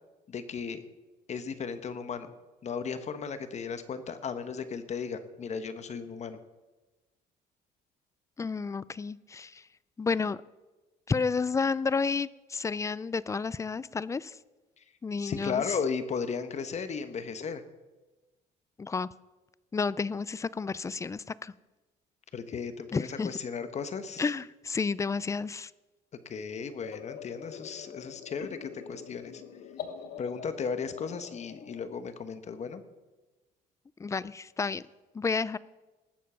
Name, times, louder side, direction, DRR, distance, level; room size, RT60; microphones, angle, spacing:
voice 1, 0.3-0.8 1.3-2.3 2.6-6.4 14.8-14.9 15.2-17.6 22.3-24.2 26.2-29.4 30.2-32.8, left 6 dB, 40° left, 10 dB, 1.2 m, -35 dB
voice 2, 8.4-9.6 10.0-10.4 11.1-14.4 15.0-15.6 18.8-19.1 19.7-21.5 22.9-23.3 24.2-25.7 34.0-34.8 35.1-35.6, left 4 dB, 20° left, 19 dB, 0.4 m, -31 dB
sound 1, 26.8-31.9, left 8 dB, 70° left, 1.2 m, -44 dB
19.0 x 7.4 x 5.7 m, 1.1 s
cardioid pair, 110°, 17 cm